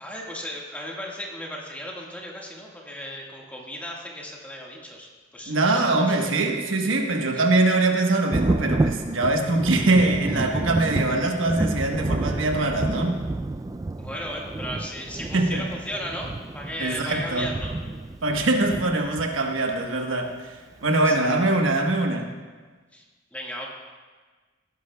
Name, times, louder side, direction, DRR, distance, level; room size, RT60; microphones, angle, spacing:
voice 1, 0.0-6.3 7.3-7.4 14.0-17.7 20.9-21.3 22.9-23.0 23.3-23.7, equal, 10° left, -2 dB, 1.6 m, -36 dB
voice 2, 5.5-13.2 15.3-15.6 16.8-17.5 18.2-20.3 20.8-22.3, right 2 dB, 85° right, 2 dB, 1.2 m, -23 dB
Thunder, 8.3-19.7 21.0-21.1 21.7-21.8, right 2 dB, 20° right, 0.3 m, -30 dB
16.5 x 11.5 x 2.3 m, 1.4 s
head